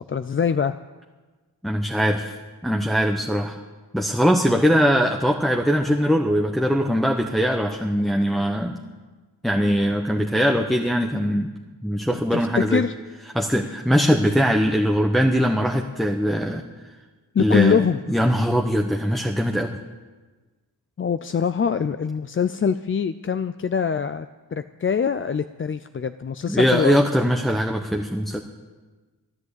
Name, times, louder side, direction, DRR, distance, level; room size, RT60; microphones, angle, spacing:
voice 1, 0.1-0.8 12.1-12.9 17.3-18.0 21.0-27.0, left 6 dB, 35° left, 11 dB, 0.4 m, -23 dB
voice 2, 1.6-2.4 2.6-3.6 3.9-8.8 9.4-11.5 11.8-12.8 13.3-16.6 17.4-17.8 18.1-19.8 26.5-28.4, equal, ahead, 3 dB, 0.8 m, -21 dB
13.5 x 10.5 x 8.2 m, 1.3 s
wide cardioid pair, 85°, 39 cm